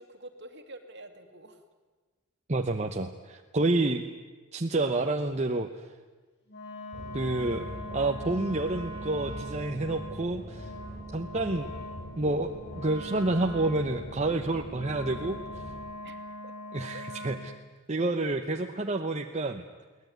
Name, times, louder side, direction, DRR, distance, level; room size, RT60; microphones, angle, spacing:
voice 1, 0.0-1.6 16.0-16.2 16.4-16.5 16.9-17.2, right 2 dB, 55° right, 7 dB, 2.5 m, -47 dB
voice 2, 2.5-4.0 4.5-5.7 7.1-10.7 11.1-11.7 12.2-15.4 16.7-17.5 17.9-19.6, right 2 dB, 35° right, 4 dB, 1.0 m, -29 dB
Wind instrument woodwind instrument, 6.5-17.5, equal, 55° left, 4.5 m, -42 dB
sound 1, 6.9-15.8, left 1 dB, 10° left, 7.3 m, -43 dB
23.0 x 18.0 x 9.5 m, 1.3 s
head